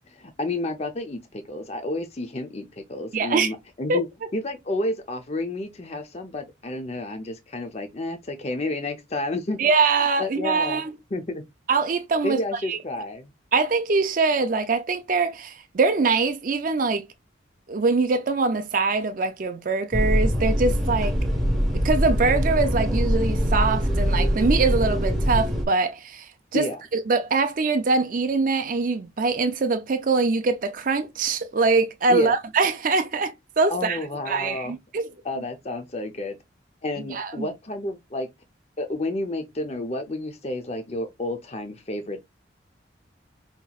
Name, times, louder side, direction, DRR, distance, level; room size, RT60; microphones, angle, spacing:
voice 1, 0.1-4.1 4.3-9.6 10.2-10.8 11.1-11.4 12.2-13.3 26.5-26.8 32.1-32.4 33.7-34.7 35.2-36.4 36.8-38.3 38.8-42.2, left 2 dB, 35° left, 0.6 m, -30 dB
voice 2, 3.1-3.5 3.9-4.0 9.6-10.9 11.7-12.8 13.5-17.1 17.7-21.2 21.7-34.0 34.3-35.1 37.1-37.5, right 4 dB, 45° right, 0.4 m, -23 dB
sound 1, 19.9-25.6, equal, ahead, 1.1 m, -23 dB
5.3 x 2.9 x 2.3 m
head